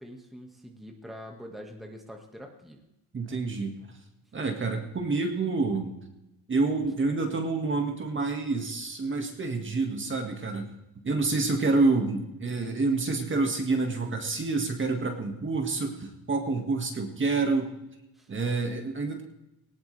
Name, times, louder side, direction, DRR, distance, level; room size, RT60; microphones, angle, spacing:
voice 1, 0.0-2.8 3.2-3.4 18.2-18.3, equal, ahead, 1 dB, 1.8 m, -45 dB
voice 2, 3.1-3.7 4.3-5.9 6.5-10.7 11.0-17.8 18.3-19.2, right 3 dB, 30° right, 3 dB, 2.0 m, -28 dB
18.5 x 18.5 x 3.4 m, 0.95 s
cardioid pair, 120°, 42 cm